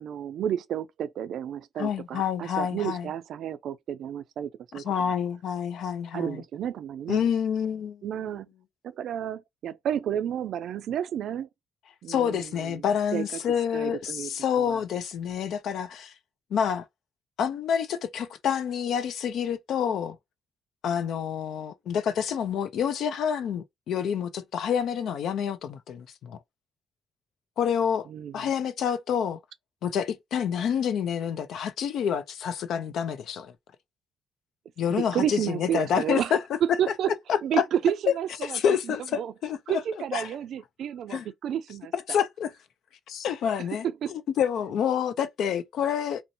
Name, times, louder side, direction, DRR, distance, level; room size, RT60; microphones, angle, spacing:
voice 1, 0.0-4.8 6.1-7.2 8.0-8.5 8.8-11.5 12.0-12.8 13.1-13.3 13.7-14.8 28.1-28.5 34.9-36.3 36.6-37.1 37.4-39.3 39.7-42.2 43.8-44.2, right 9 dB, 70° right, 0.3 m, -31 dB
voice 2, 1.8-3.1 4.7-6.4 7.1-8.0 12.1-16.1 16.5-16.9 17.4-20.2 20.8-26.4 27.6-28.1 28.3-29.4 29.8-33.5 34.8-36.4 37.3-37.6 38.4-39.8 40.1-40.3 41.1-41.3 41.9-42.5 43.1-46.2, left 8 dB, 75° left, 0.4 m, -28 dB
2.6 x 2.0 x 2.7 m
cardioid pair, 90°, 0 cm